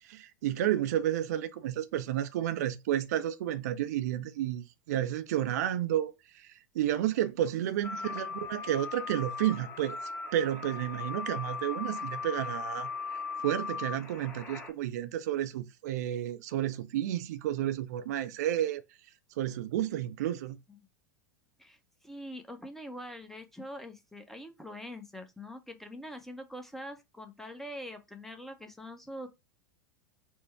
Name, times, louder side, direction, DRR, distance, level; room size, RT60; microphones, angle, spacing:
voice 1, 0.0-10.0 10.3-12.9 13.4-18.8 19.4-20.6, right 12 dB, 60° right, 0.4 m, -31 dB
sound 1, 7.8-14.7, left 5 dB, 20° left, 1.3 m, -38 dB
voice 2, 21.6-29.3, equal, 5° left, 0.7 m, -44 dB
4.4 x 2.1 x 4.6 m
figure-of-eight pair, 85°, 10 cm